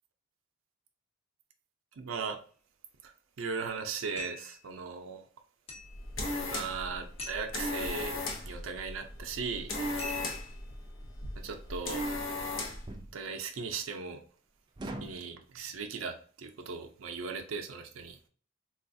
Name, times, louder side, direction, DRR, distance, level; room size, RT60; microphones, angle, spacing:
voice 1, 2.0-2.4 3.0-3.1 3.4-5.3 6.5-9.7 11.4-12.1 13.1-14.2 14.8-18.2, right 5 dB, 85° right, 5 dB, 0.5 m, -38 dB
sound 1, 4.2-4.6 5.7-6.0 7.2-7.5 10.0-10.6, left 3 dB, 30° left, 0.9 m, -42 dB
sound 2, 5.8-12.9, left 2 dB, 75° left, 0.7 m, -37 dB
sound 3, 10.7-10.9 12.9-13.2 14.8-15.2, right 1 dB, 20° right, 0.4 m, -41 dB
3.8 x 2.3 x 2.6 m, 0.43 s
head